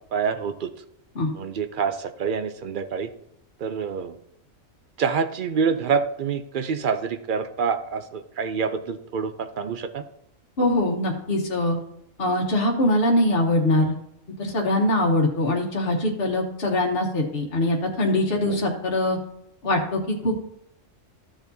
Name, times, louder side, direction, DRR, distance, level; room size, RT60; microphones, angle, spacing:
voice 1, 0.1-0.7 1.4-3.1 3.6-4.2 5.0-10.0 18.5-18.6, right 6 dB, 55° right, 10 dB, 0.6 m, -26 dB
voice 2, 10.6-11.8 12.2-13.9 14.4-19.2 19.6-20.5, left 1 dB, 50° left, -1 dB, 1.3 m, -22 dB
13.5 x 7.0 x 2.7 m, 0.75 s
omnidirectional pair, 1.4 m